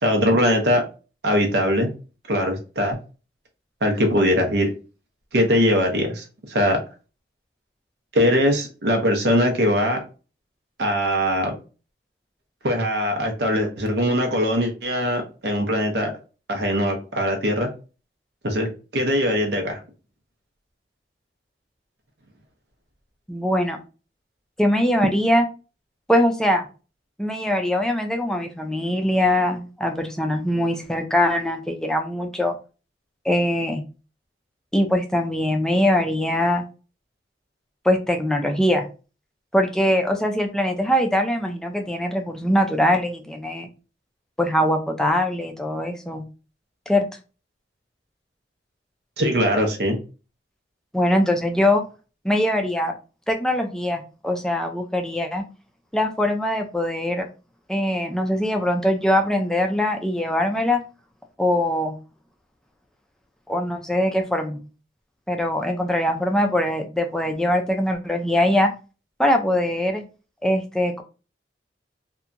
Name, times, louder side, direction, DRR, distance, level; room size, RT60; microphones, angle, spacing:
voice 1, 0.0-0.8 1.2-1.9 2.3-3.0 3.8-4.7 5.3-6.8 8.1-10.0 10.8-11.5 12.6-16.1 16.5-17.7 18.4-18.7 18.9-19.8 49.2-50.0, equal, 70° right, 3 dB, 0.6 m, -21 dB
voice 2, 23.3-23.8 24.6-25.4 26.1-26.7 27.2-32.6 33.2-33.8 34.7-36.6 37.8-38.9 39.5-43.7 44.4-46.2 46.9-47.1 50.9-51.8 52.2-52.9 53.3-55.4 55.9-57.3 57.7-60.8 61.4-62.0 63.5-64.6 65.3-68.7 69.2-70.0 70.4-71.0, left 1 dB, 5° left, 3 dB, 0.3 m, -22 dB
2.8 x 2.2 x 2.5 m, 0.33 s
head